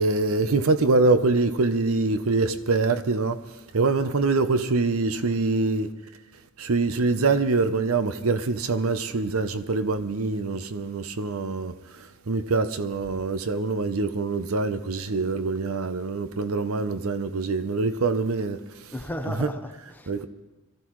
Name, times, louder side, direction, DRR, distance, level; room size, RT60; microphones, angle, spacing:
voice 1, 0.0-3.4 3.7-5.9 6.6-18.6 18.9-19.0 19.3-19.5 20.1-20.3, right 3 dB, 85° right, 0.7 m, -24 dB
voice 2, 18.9-20.3, left 1 dB, 10° left, 0.7 m, -35 dB
23.5 x 14.5 x 3.1 m
head